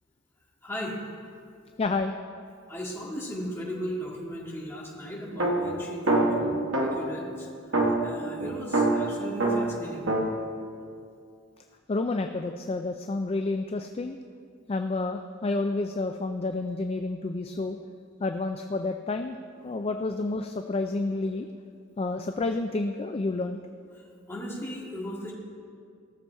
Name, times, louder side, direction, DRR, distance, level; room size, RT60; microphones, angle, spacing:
voice 1, 0.6-1.0 2.7-10.1 19.6-19.8 23.9-25.3, equal, 10° left, -5 dB, 2.0 m, -37 dB
voice 2, 1.8-2.1 11.9-14.2 14.7-17.8 18.2-19.4 19.6-21.5 22.0-23.6, left 3 dB, 30° left, 6 dB, 0.4 m, -29 dB
sound 1, 5.4-7.2 7.7-10.3, right 2 dB, 65° right, 1.3 m, -25 dB
16.5 x 7.0 x 4.5 m, 2.3 s
head